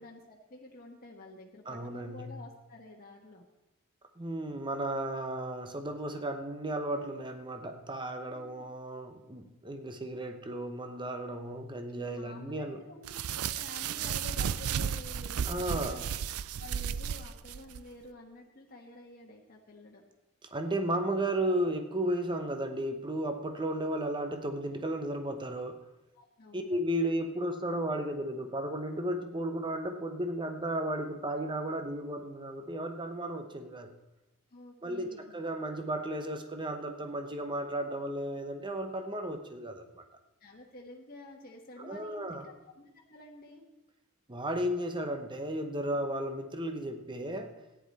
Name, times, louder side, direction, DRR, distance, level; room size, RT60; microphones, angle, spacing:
voice 1, 0.0-3.4 8.3-8.7 11.9-16.1 16.6-20.0 26.2-26.7 34.5-35.3 40.4-43.6, left 2 dB, 45° left, -1 dB, 1.2 m, -50 dB
voice 2, 1.7-2.3 4.2-12.8 15.4-16.0 20.5-25.8 26.5-33.9 34.8-40.0 41.8-42.5 44.3-47.6, right 1 dB, 20° right, 6 dB, 0.9 m, -34 dB
sound 1, 13.0-17.8, right 8 dB, 85° right, 0.4 m, -34 dB
14.0 x 9.9 x 4.2 m, 0.98 s
head